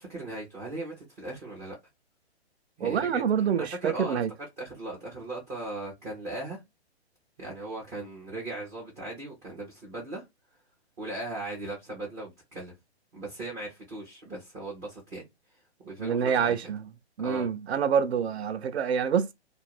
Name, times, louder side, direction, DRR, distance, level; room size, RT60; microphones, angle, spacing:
voice 1, 0.0-1.8 2.8-3.2 3.6-4.2 4.6-6.6 7.4-10.2 11.0-12.7 13.1-15.3 15.8-16.7 17.2-17.5, right 2 dB, 10° right, 0.4 m, -38 dB
voice 2, 2.8-4.3 16.0-16.8 17.2-19.3, right 7 dB, 70° right, 0.6 m, -26 dB
2.4 x 2.0 x 3.0 m
hypercardioid pair, 135°, 33 cm